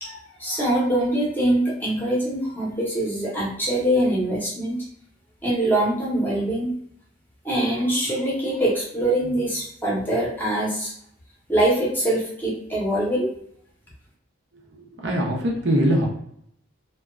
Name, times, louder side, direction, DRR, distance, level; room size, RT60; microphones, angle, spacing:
voice 1, 0.0-4.8 5.4-6.7 7.4-10.9 11.5-13.3, right 1 dB, 10° left, -5 dB, 0.7 m, -23 dB
voice 2, 14.5-16.1, right 1 dB, 60° right, -1 dB, 0.6 m, -23 dB
2.7 x 2.2 x 2.3 m, 0.68 s
head